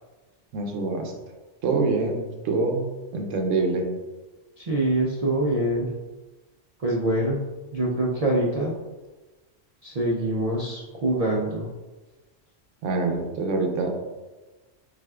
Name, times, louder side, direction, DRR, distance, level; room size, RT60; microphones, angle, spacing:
voice 1, 0.5-1.1 1.6-3.9 12.8-14.0, right 3 dB, 75° right, 3 dB, 1.0 m, -25 dB
voice 2, 4.6-5.9 6.8-7.4 7.7-8.7 9.8-11.7, right 1 dB, 60° right, -4 dB, 0.3 m, -24 dB
5.9 x 2.4 x 2.3 m, 1.2 s
omnidirectional pair, 1.3 m